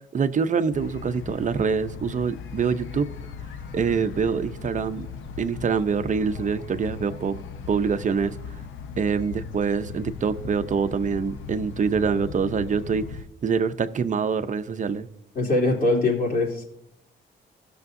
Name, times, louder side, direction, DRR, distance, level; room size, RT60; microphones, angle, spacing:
voice 1, 0.1-3.1 3.7-5.1 5.4-7.4 7.7-8.3 9.0-13.1 13.4-15.1, right 6 dB, 40° right, 0.7 m, -25 dB
sound 1, 0.7-13.2, left 6 dB, 75° left, 0.8 m, -38 dB
voice 2, 15.3-16.6, left 2 dB, 45° left, 3.2 m, -22 dB
17.0 x 6.6 x 2.7 m
cardioid pair, 90°, 20 cm